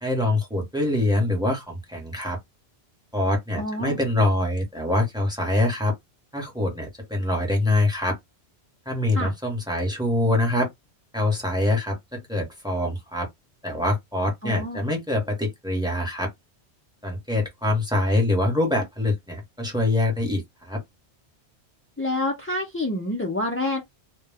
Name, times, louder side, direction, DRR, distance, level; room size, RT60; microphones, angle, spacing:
voice 1, 0.0-2.4 3.1-5.9 6.3-8.2 8.9-10.7 11.1-13.3 13.6-16.3 17.0-20.8, left 1 dB, 5° right, 0.9 m, -24 dB
voice 2, 3.6-4.0 9.1-9.3 14.4-14.8 22.0-23.8, left 2 dB, 20° left, 0.3 m, -27 dB
2.2 x 2.1 x 3.3 m
omnidirectional pair, 1.2 m